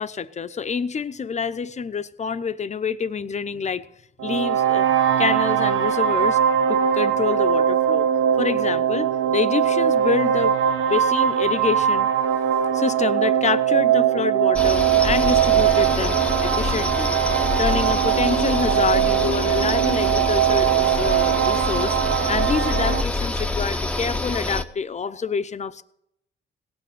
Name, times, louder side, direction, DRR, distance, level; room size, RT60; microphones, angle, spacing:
voice 1, 0.0-3.8 4.2-4.9 5.2-6.4 6.7-8.1 8.4-10.5 10.9-12.1 12.7-17.2 17.6-22.0 22.3-25.8, left 6 dB, 35° left, 0.8 m, -27 dB
sound 1, 4.2-23.0, right 10 dB, 85° right, 1.1 m, -21 dB
sound 2, 14.5-24.6, left 2 dB, 5° left, 1.0 m, -26 dB
17.5 x 6.8 x 9.0 m
cardioid pair, 90°, 20 cm